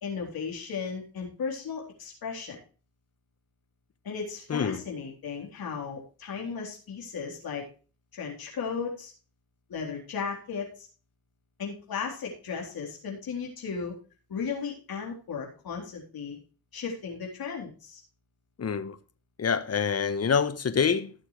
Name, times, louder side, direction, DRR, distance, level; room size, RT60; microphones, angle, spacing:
voice 1, 0.0-2.6 4.0-7.6 8.1-9.1 9.7-10.9 11.6-13.9 14.3-16.4 16.7-18.0, left 6 dB, 65° left, 3.8 m, -35 dB
voice 2, 4.5-4.8 18.6-19.0 19.4-21.1, left 6 dB, 40° left, 1.3 m, -26 dB
16.0 x 6.8 x 3.2 m
cardioid pair, 80°, 39 cm